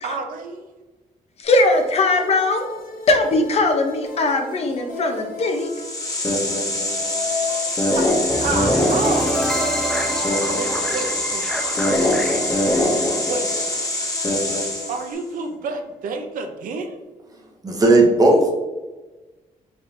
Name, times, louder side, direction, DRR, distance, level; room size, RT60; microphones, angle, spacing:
voice 1, 0.0-0.7 7.9-8.1 8.4-9.6 10.5-12.5 13.3-13.5 14.9-17.0, right 4 dB, 80° right, 5 dB, 0.5 m, -30 dB
sound 1, 1.4-15.1, left 5 dB, 70° left, 1.3 m, -36 dB
voice 2, 1.4-2.6 3.1-5.7, left 2 dB, 50° left, 5 dB, 0.6 m, -19 dB
sound 2, 5.5-15.1, left 1 dB, 25° left, 0.9 m, -23 dB
sound 3, 8.3-14.4, right 1 dB, 5° left, 0.5 m, -28 dB
voice 3, 17.6-18.5, right 2 dB, 25° right, 1 dB, 0.8 m, -14 dB
4.2 x 3.3 x 2.5 m, 1.2 s
cardioid pair, 110°, 14 cm